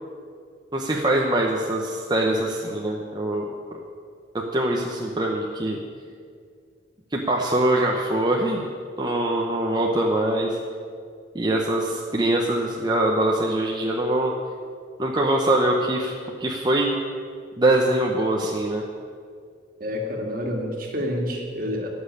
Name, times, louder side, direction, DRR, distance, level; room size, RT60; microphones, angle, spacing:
voice 1, 0.7-3.4 4.5-5.8 7.1-8.7 9.0-10.5 11.3-14.3 15.0-16.1 16.4-16.9 17.6-18.8, right 1 dB, 25° right, -1 dB, 0.9 m, -23 dB
voice 2, 19.8-21.9, equal, 50° right, 1 dB, 2.1 m, -28 dB
13.5 x 6.3 x 9.8 m, 2.1 s
head